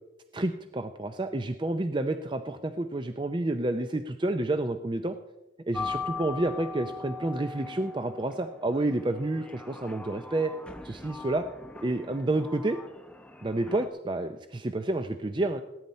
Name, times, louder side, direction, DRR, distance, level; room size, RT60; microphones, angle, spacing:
voice 1, 0.3-5.1 5.7-10.5 10.8-11.4 11.8-12.8 13.4-15.6, right 2 dB, 25° right, 8 dB, 0.5 m, -29 dB
sound 1, 5.7-13.9, left 4 dB, 5° left, 0.7 m, -40 dB
18.5 x 9.3 x 4.2 m, 0.99 s
head